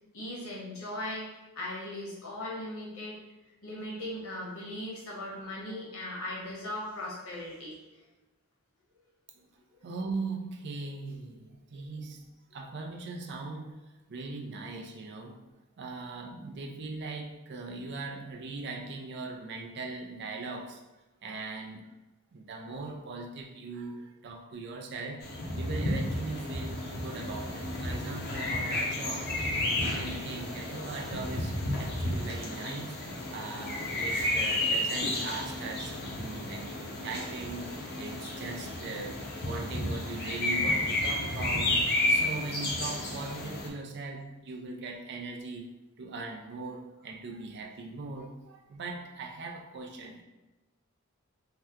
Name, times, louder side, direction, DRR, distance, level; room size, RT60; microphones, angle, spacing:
voice 1, 0.1-1.3 1.5-3.2 3.6-7.7 9.8-9.9 11.7-11.9, left 1 dB, 70° left, -5 dB, 1.0 m, -38 dB
voice 2, 9.8-13.8 14.1-15.4 15.8-20.8 21.2-21.8 22.3-29.3 29.7-41.8 42.1-45.7 46.0-50.2, right 3 dB, 50° right, 1 dB, 0.4 m, -40 dB
sound 1, 25.2-43.7, left 1 dB, 45° left, 0.6 m, -32 dB
2.8 x 2.2 x 3.4 m, 1.1 s
head